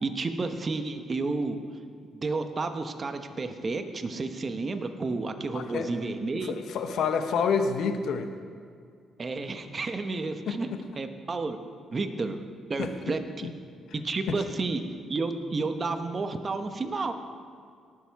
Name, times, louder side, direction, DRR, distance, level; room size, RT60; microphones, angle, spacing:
voice 1, 0.0-1.6 2.1-6.5 9.2-10.7 11.0-11.6 11.9-12.4 12.7-13.5 13.9-14.8 15.1-17.1, right 3 dB, 35° right, 7 dB, 1.0 m, -31 dB
voice 2, 5.5-5.9 6.4-8.3 10.4-10.8 12.8-12.9 13.4-13.5 14.3-14.4, left 6 dB, 75° left, 7 dB, 0.9 m, -28 dB
18.5 x 6.9 x 4.7 m, 2.2 s
cardioid pair, 90°, 0 cm